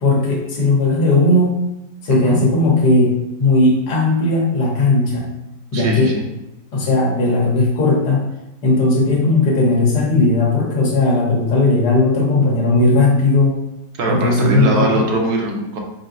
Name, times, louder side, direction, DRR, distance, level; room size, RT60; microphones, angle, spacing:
voice 1, 0.0-1.6 2.0-3.1 3.4-5.3 5.7-6.1 6.7-8.2 8.6-13.6 14.1-14.9, left 2 dB, 75° left, -2 dB, 1.7 m, -16 dB
voice 2, 2.1-2.4 5.7-6.3 14.0-15.8, right 1 dB, 75° right, 0 dB, 1.3 m, -21 dB
4.9 x 4.3 x 2.5 m, 0.93 s
omnidirectional pair, 1.8 m